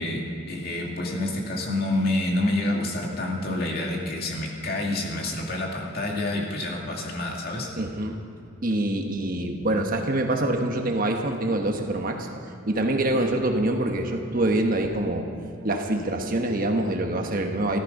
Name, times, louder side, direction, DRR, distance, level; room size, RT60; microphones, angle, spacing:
voice 1, 0.0-7.7, left 1 dB, 50° left, -1 dB, 2.4 m, -28 dB
voice 2, 7.8-8.2 8.6-12.3 12.7-15.3 15.6-17.8, right 1 dB, 45° right, 3 dB, 1.3 m, -25 dB
14.0 x 14.0 x 5.4 m, 2.6 s
head